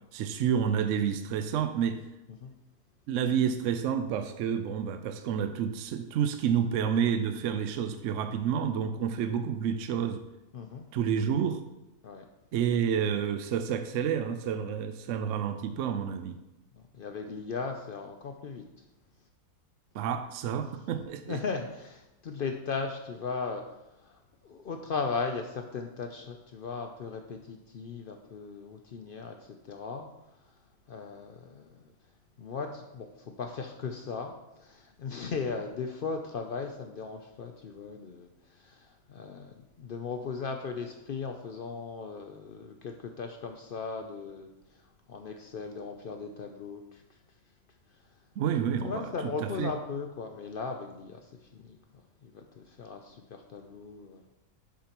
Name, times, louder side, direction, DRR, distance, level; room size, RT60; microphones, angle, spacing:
voice 1, 0.1-2.0 3.1-10.2 10.9-11.6 12.5-16.4 19.9-21.4 48.4-49.0 49.4-49.7, right 8 dB, 65° right, 8 dB, 0.8 m, -29 dB
voice 2, 10.5-10.9 12.0-12.2 16.8-18.8 21.3-31.9 32.4-47.4 47.9-48.2 48.8-51.8 52.2-54.3, left 4 dB, 75° left, 4 dB, 0.5 m, -38 dB
7.5 x 7.1 x 2.9 m, 0.94 s
omnidirectional pair, 1.6 m